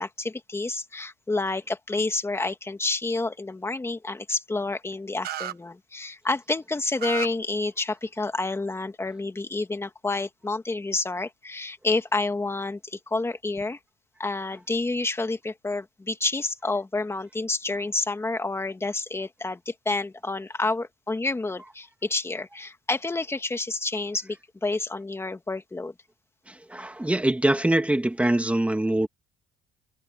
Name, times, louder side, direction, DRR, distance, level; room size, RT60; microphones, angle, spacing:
voice 1, 0.0-13.8 14.2-25.9, left 3 dB, 15° left, 2.2 m, -29 dB
sound 1, 5.2-5.5 7.0-7.3, right 13 dB, 65° right, 1.3 m, -32 dB
voice 2, 26.5-29.1, right 1 dB, 10° right, 2.5 m, -23 dB
cardioid pair, 110°, 17 cm